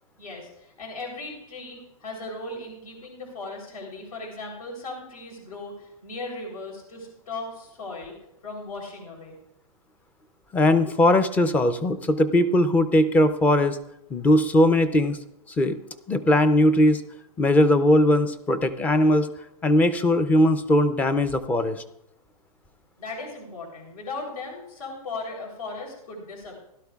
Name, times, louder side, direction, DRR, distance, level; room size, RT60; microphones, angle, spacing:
voice 1, 0.2-8.1 8.4-9.4 23.0-26.6, left 3 dB, 70° left, 1 dB, 3.6 m, -37 dB
voice 2, 10.5-13.8 14.1-15.2 15.6-15.8 16.1-17.0 17.4-19.3 19.6-21.8, left 1 dB, 10° left, 12 dB, 0.4 m, -20 dB
16.5 x 12.0 x 2.3 m, 0.81 s
hypercardioid pair, 145°, 19 cm